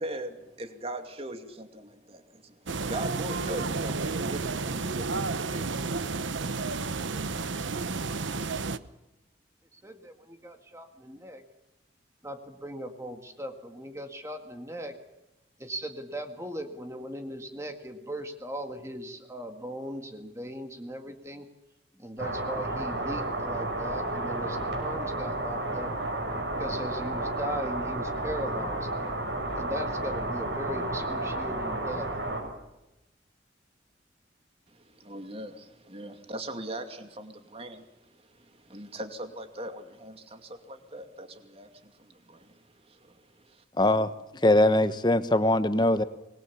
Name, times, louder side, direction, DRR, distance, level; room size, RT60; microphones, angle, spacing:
voice 1, 0.0-6.0 34.7-43.6, right 1 dB, 30° right, 6 dB, 2.5 m, -41 dB
sound 1, 2.7-8.8, right 4 dB, 85° right, 1.0 m, -31 dB
voice 2, 9.7-11.4 12.2-14.9 15.6-21.5 22.0-25.9 26.6-28.9 29.6-32.1, equal, 15° right, 5 dB, 1.9 m, -38 dB
sound 2, 22.2-32.4, right 2 dB, 65° right, 7.3 m, -32 dB
voice 3, 43.8-44.1 44.4-46.0, left 1 dB, 25° left, 12 dB, 1.2 m, -21 dB
25.5 x 21.5 x 7.2 m, 0.95 s
head